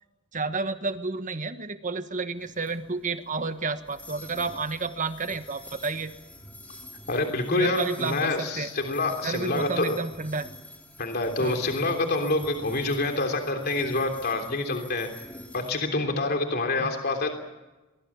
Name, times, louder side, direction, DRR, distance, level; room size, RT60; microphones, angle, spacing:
voice 1, 0.3-6.1 7.5-8.7 9.2-10.5 11.4-11.6 16.8-16.9, right 3 dB, 40° right, 9 dB, 1.4 m, -31 dB
sound 1, 2.4-15.7, left 1 dB, 10° left, 5.2 m, -47 dB
voice 2, 7.1-10.0 11.0-15.1 15.5-17.4, left 2 dB, 50° left, 4 dB, 3.3 m, -27 dB
23.0 x 21.5 x 7.2 m, 1.1 s
head